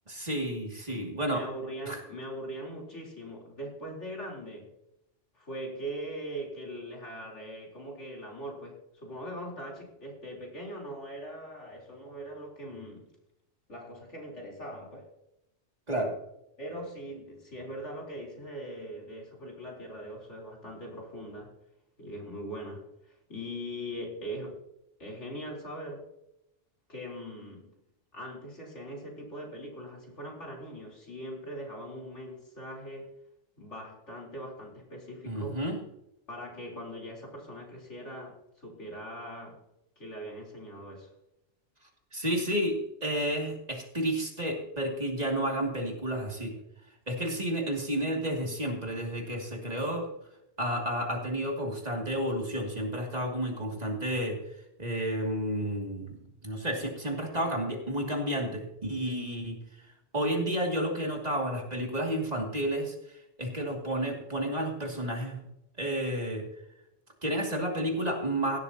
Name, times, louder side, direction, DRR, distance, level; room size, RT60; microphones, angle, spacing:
voice 1, 0.1-1.4 1.9-2.0 15.9-16.1 35.2-35.8 42.1-46.5 47.1-50.1 50.6-54.4 54.8-56.1 56.4-59.6 60.1-65.4 65.8-66.4 67.2-68.6, right 1 dB, 35° right, 0 dB, 2.7 m, -31 dB
voice 2, 1.3-4.7 5.3-13.1 13.7-15.1 16.6-21.5 22.0-24.6 25.0-26.0 26.9-27.7 28.1-33.1 33.6-35.6 36.3-39.6 40.0-41.1, equal, 85° left, -2 dB, 4.2 m, -41 dB
16.5 x 12.0 x 2.9 m, 0.84 s
omnidirectional pair, 1.2 m